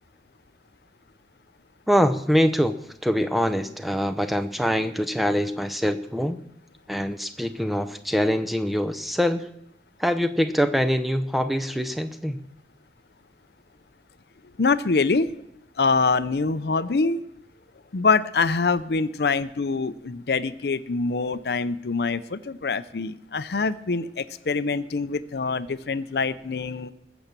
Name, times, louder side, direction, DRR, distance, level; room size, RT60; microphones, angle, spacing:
voice 1, 1.9-2.8 3.0-6.4 6.9-9.5 10.0-12.4, equal, ahead, 8 dB, 0.6 m, -24 dB
voice 2, 14.6-15.3 15.8-17.2 17.9-26.9, left 4 dB, 65° left, 14 dB, 0.6 m, -24 dB
20.5 x 7.1 x 6.7 m, 0.78 s
head